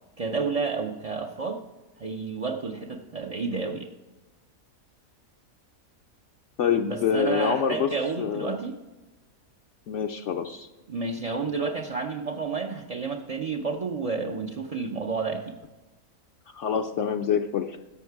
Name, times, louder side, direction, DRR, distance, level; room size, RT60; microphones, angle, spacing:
voice 1, 0.2-1.6 2.0-3.9 6.8-8.8 10.9-15.6, right 4 dB, 45° right, 1 dB, 0.5 m, -30 dB
voice 2, 6.6-7.9 8.2-8.6 9.9-10.7 16.5-17.8, left 7 dB, 65° left, 4 dB, 0.8 m, -26 dB
11.5 x 8.1 x 4.6 m, 1.1 s
omnidirectional pair, 1.5 m